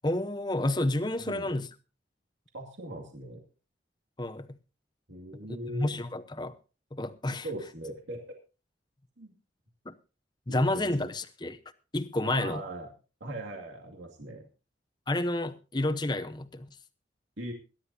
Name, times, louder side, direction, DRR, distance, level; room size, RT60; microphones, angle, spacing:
voice 1, 0.0-1.7 4.2-4.6 5.7-6.5 6.9-7.5 9.9-10.0 10.5-11.6 11.9-12.6 15.1-16.7, left 1 dB, 25° left, 0.9 m, -30 dB
voice 2, 2.5-3.4 5.1-5.9 7.4-8.4 9.2-9.3 10.5-11.1 12.2-12.9 13.2-14.4 17.4-17.5, right 1 dB, 75° right, 2.4 m, -40 dB
22.0 x 11.5 x 2.8 m
head